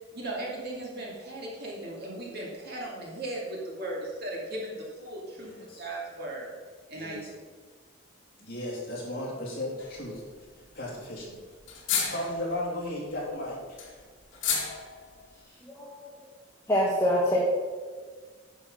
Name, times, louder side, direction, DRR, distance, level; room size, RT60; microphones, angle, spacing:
voice 1, 0.1-5.5 5.8-6.5 6.9-7.3, right 1 dB, 50° right, -3 dB, 2.5 m, -37 dB
voice 2, 5.4-5.8 6.9-7.2 8.4-10.2 10.7-11.3 12.1-13.8, left 1 dB, 45° left, -4 dB, 3.1 m, -35 dB
sound 1, 9.8-10.2 10.4-10.5 10.7-10.8 11.1-11.2 11.6-12.6 13.2-15.3, left 6 dB, 70° left, 2.0 m, -32 dB
voice 3, 15.6-16.0 16.7-17.4, equal, 15° left, -5 dB, 1.3 m, -25 dB
10.0 x 6.5 x 5.5 m, 1.5 s
head